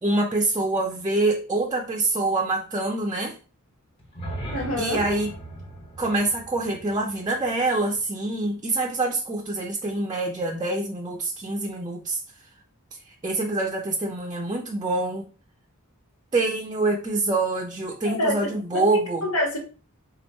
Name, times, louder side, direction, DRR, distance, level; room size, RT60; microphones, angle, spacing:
voice 1, 0.0-3.4 4.8-5.3 6.0-12.2 13.1-15.3 16.3-19.3, right 2 dB, 20° right, 0.5 m, -25 dB
sound 1, 4.0-8.1, right 1 dB, 25° left, 1.0 m, -38 dB
voice 2, 4.5-5.0 18.0-18.8 19.2-19.6, left 1 dB, 80° left, 1.6 m, -26 dB
4.5 x 2.4 x 4.3 m
head